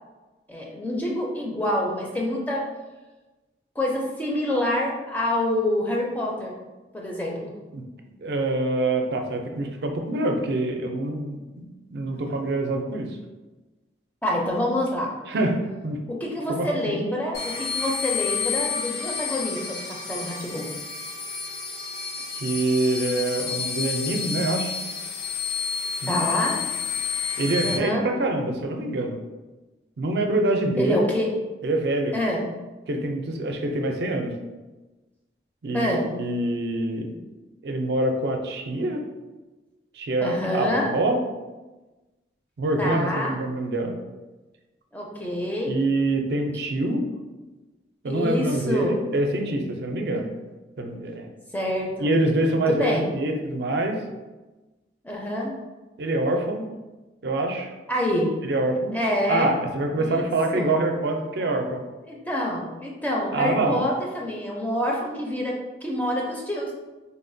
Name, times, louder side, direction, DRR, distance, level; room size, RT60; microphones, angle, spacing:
voice 1, 0.5-2.6 3.8-6.6 6.9-7.5 14.2-15.1 16.1-20.7 26.1-26.6 27.6-28.1 30.8-31.3 32.1-32.5 35.7-36.1 40.2-40.9 42.8-43.4 44.9-45.8 48.1-49.0 51.5-52.2 52.5-53.1 55.0-55.5 57.9-58.3 58.9-59.6 60.0-60.7 62.1-66.7, left 1 dB, 10° left, -2 dB, 0.4 m, -27 dB
voice 2, 8.2-11.4 11.9-13.1 15.3-15.5 15.8-16.0 16.5-17.0 22.3-24.8 26.0-26.2 27.4-29.2 30.0-31.0 31.6-32.2 32.9-34.3 35.6-37.1 37.6-39.0 39.9-41.2 42.6-43.9 45.7-47.0 48.0-50.3 50.8-51.3 52.0-54.0 56.0-56.6 57.2-57.7 58.4-59.0 59.3-61.8 63.3-63.8, right 2 dB, 65° right, 3 dB, 0.4 m, -25 dB
sound 1, 17.3-27.8, left 6 dB, 60° left, 0.6 m, -30 dB
3.9 x 2.1 x 2.6 m, 1.2 s
head